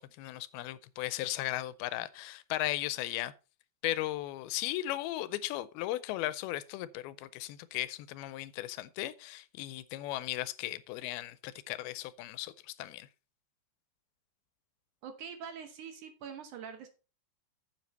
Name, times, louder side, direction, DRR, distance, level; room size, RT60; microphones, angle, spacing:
voice 1, 0.0-3.3 3.8-13.1, left 15 dB, 90° left, 2.5 m, -36 dB
voice 2, 15.0-16.9, right 7 dB, 70° right, 2.2 m, -44 dB
9.4 x 7.7 x 4.1 m
omnidirectional pair, 4.4 m